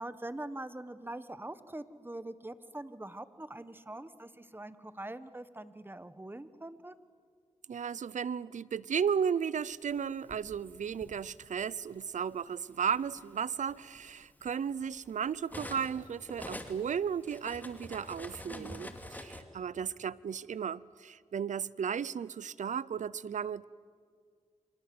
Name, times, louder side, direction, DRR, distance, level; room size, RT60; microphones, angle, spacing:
voice 1, 0.0-6.9 18.5-19.0, right 1 dB, 15° right, 13 dB, 1.3 m, -43 dB
voice 2, 7.7-23.6, right 7 dB, 85° right, 21 dB, 0.6 m, -34 dB
Cutlery silverware, 9.9-11.2 12.1-12.3 12.7-16.0 16.3-19.4, left 1 dB, 15° left, 2.8 m, -46 dB
29.5 x 25.0 x 7.8 m, 2.1 s
cardioid pair, 65°, 12 cm